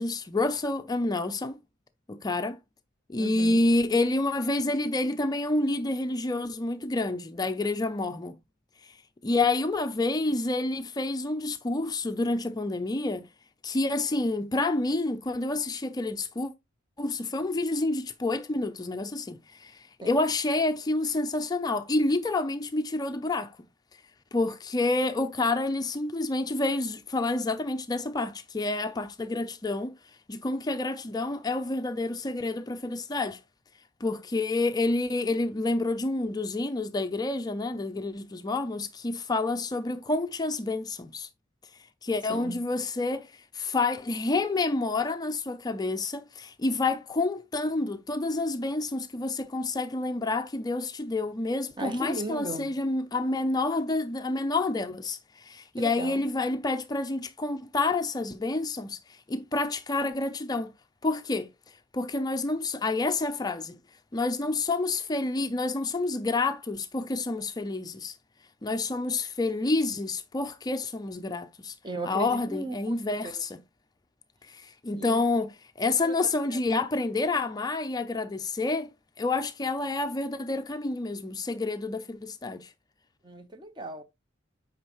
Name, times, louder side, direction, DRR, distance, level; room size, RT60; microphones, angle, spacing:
voice 1, 0.0-1.6 2.1-2.6 3.1-8.4 8.8-9.0 9.2-13.3 13.6-16.5 17.0-23.6 24.3-29.9 30.3-33.4 34.0-41.3 42.0-60.7 61.0-61.5 61.9-63.8 64.1-68.2 68.6-71.7 72.0-73.6 74.5-75.5 75.8-78.9 79.2-82.7, left 2 dB, 20° left, 0.4 m, -28 dB
voice 2, 3.2-3.6 20.0-20.1 42.3-42.6 51.8-52.7 55.8-56.3 71.8-72.9 73.2-73.5 75.0-75.2 75.8-76.2 76.5-76.6 83.2-84.0, right 2 dB, 25° right, 0.9 m, -37 dB
8.6 x 5.3 x 3.0 m
head